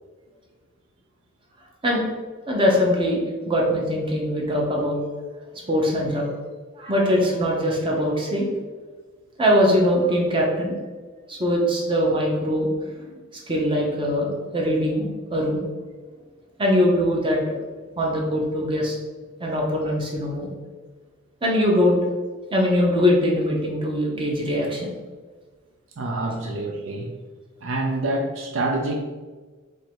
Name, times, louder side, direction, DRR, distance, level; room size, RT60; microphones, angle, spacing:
voice 1, 2.5-5.0 5.7-6.3 6.8-8.4 9.4-10.8 11.3-12.7 13.1-13.2 13.5-15.6 16.6-17.6 18.0-19.0 19.4-20.5 21.4-22.0 22.5-24.9 26.3-26.4, equal, 25° right, -2 dB, 0.9 m, -22 dB
voice 2, 26.0-27.1 27.6-29.0, right 2 dB, 70° right, 2 dB, 0.5 m, -26 dB
3.7 x 3.1 x 4.6 m, 1.3 s
head